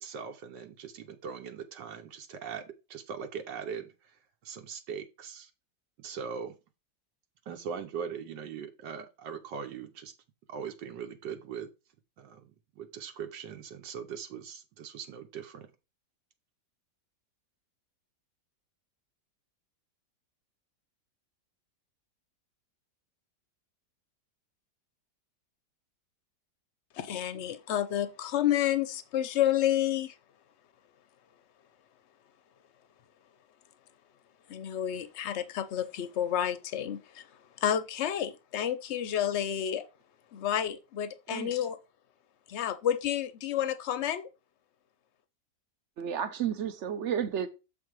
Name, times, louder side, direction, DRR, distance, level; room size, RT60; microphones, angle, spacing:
voice 1, 0.0-4.2 4.4-5.5 6.0-6.6 7.5-10.1 10.5-11.7 12.2-15.7, right 7 dB, 85° right, 1.6 m, -40 dB
voice 2, 26.9-30.1 34.5-37.2 37.6-39.9 40.3-41.8 42.5-44.3, left 10 dB, 55° left, 0.7 m, -30 dB
voice 3, 46.0-47.5, right 8 dB, 55° right, 0.8 m, -32 dB
7.6 x 3.8 x 4.7 m
omnidirectional pair, 1.9 m